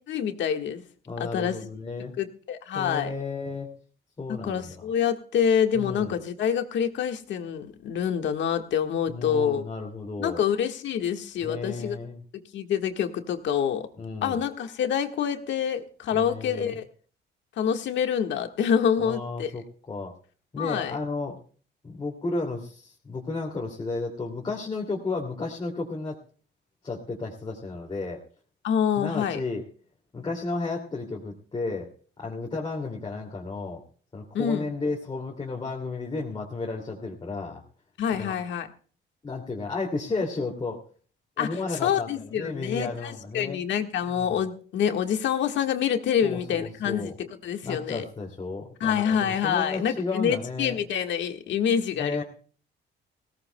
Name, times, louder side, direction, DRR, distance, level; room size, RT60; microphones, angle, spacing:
voice 1, 0.1-0.8 1.2-1.6 2.2-3.1 4.3-9.6 10.2-11.9 12.5-13.9 14.2-16.8 17.6-19.5 20.6-21.0 28.6-29.4 34.3-34.7 38.0-38.7 41.4-48.0 48.8-52.2, left 8 dB, 70° left, 6 dB, 1.6 m, -26 dB
voice 2, 1.1-2.1 2.7-3.7 4.2-4.7 5.8-6.1 9.1-10.4 11.4-12.2 14.0-14.4 16.1-16.7 19.0-20.1 20.5-21.4 21.8-26.2 26.8-28.2 29.0-29.6 30.1-31.9 32.2-33.8 34.1-37.6 38.1-38.4 39.2-40.8 41.4-43.6 44.1-44.4 46.2-47.1 47.6-50.8 52.0-52.2, left 3 dB, 25° left, -2 dB, 2.6 m, -33 dB
20.5 x 17.0 x 2.3 m, 0.42 s
cardioid pair, 120°, 20 cm